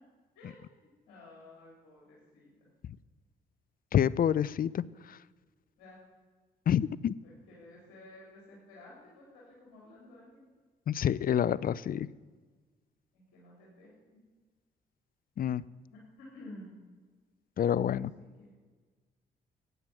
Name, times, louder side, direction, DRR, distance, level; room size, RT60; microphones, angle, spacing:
voice 1, 0.3-2.7 5.8-6.0 7.2-10.5 13.1-13.9 15.9-16.7 17.8-18.5, left 1 dB, 80° left, -3 dB, 3.5 m, -53 dB
voice 2, 3.9-5.2 6.7-7.1 10.9-12.1 15.4-15.6 17.6-18.1, left 9 dB, 50° left, 21 dB, 0.5 m, -28 dB
15.0 x 9.1 x 6.1 m, 1.4 s
supercardioid pair, 55°, 19 cm